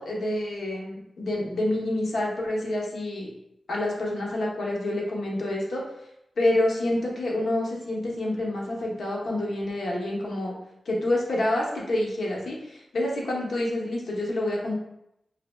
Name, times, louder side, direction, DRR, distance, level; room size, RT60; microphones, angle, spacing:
voice 1, 0.0-3.3 3.7-5.8 6.4-10.5 10.9-14.8, left 1 dB, 80° left, -2 dB, 0.8 m, -28 dB
4.0 x 3.0 x 2.2 m, 0.83 s
wide cardioid pair, 85°, 0 cm